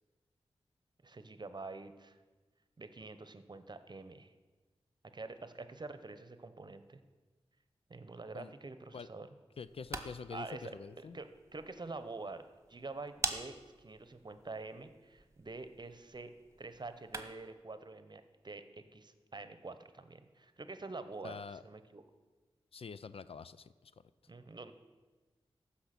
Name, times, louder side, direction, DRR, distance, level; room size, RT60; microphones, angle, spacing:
voice 1, 1.0-2.2 2.8-4.3 5.1-7.0 7.9-9.3 10.3-12.4 12.7-16.3 16.6-22.0 24.3-24.7, right 3 dB, 45° right, 11 dB, 0.9 m, -46 dB
voice 2, 9.6-11.2 21.2-21.6 22.7-23.9, left 5 dB, 60° left, 15 dB, 0.4 m, -46 dB
sound 1, 9.6-17.6, right 3 dB, 25° right, 1.3 m, -46 dB
15.0 x 5.8 x 6.0 m, 1.3 s
cardioid pair, 45°, 11 cm